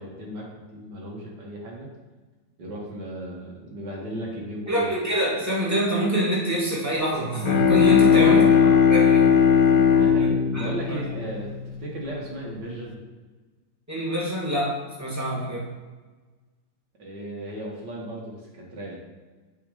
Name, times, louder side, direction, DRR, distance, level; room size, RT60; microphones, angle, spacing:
voice 1, 0.0-1.9 2.6-4.9 8.1-8.8 9.9-11.5 11.8-13.0 17.0-19.0, right 1 dB, 60° right, -2 dB, 2.1 m, -35 dB
voice 2, 4.7-8.5 8.9-9.4 9.7-9.9 10.2-10.3 10.5-10.7 13.9-15.7, right 1 dB, 10° right, -7 dB, 1.8 m, -25 dB
Bowed string instrument, 7.2-12.0, left 7 dB, 80° left, 1.3 m, -18 dB
7.7 x 3.7 x 5.0 m, 1.3 s
omnidirectional pair, 2.1 m